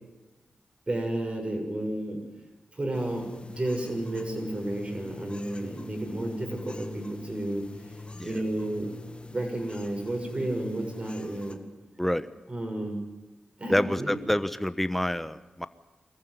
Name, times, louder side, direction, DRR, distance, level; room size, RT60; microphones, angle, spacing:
voice 1, 0.9-2.2 2.7-7.7 7.9-8.9 9.3-11.6 12.5-13.0 13.6-14.2, right 1 dB, 40° right, 3 dB, 6.6 m, -32 dB
sound 1, 2.9-11.6, left 3 dB, 40° left, 1.9 m, -44 dB
voice 2, 13.7-15.7, left 1 dB, 5° left, 12 dB, 1.1 m, -27 dB
22.0 x 14.5 x 9.6 m, 1.1 s
cardioid pair, 45°, 3 cm